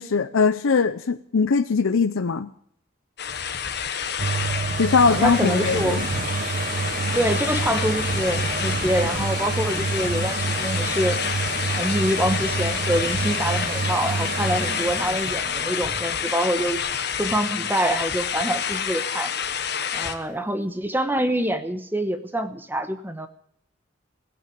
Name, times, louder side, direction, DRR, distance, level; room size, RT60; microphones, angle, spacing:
voice 1, 0.0-2.5 4.8-6.0, left 5 dB, 85° left, 10 dB, 0.6 m, -21 dB
sound 1, 3.2-20.1, left 7 dB, 55° left, 1.2 m, -28 dB
sound 2, 4.2-17.9 18.4-18.5, right 4 dB, 45° right, 1.0 m, -28 dB
voice 2, 5.0-6.0 7.1-11.2 11.6-16.8 17.2-19.3 19.9-23.3, equal, 10° right, 9 dB, 1.1 m, -25 dB
16.5 x 9.0 x 9.3 m, 0.65 s
head